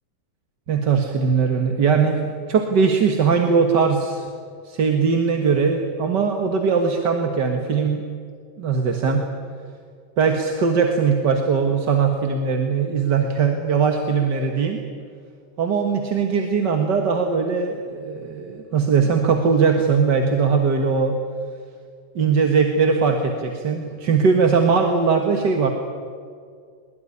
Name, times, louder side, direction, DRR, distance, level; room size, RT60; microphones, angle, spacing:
voice 1, 0.7-2.2 2.5-4.3 4.7-8.0 8.6-9.3 10.2-14.8 15.6-21.2 22.2-25.7, right 5 dB, 80° right, 4 dB, 2.2 m, -20 dB
22.0 x 22.0 x 9.9 m, 2.2 s
omnidirectional pair, 1.8 m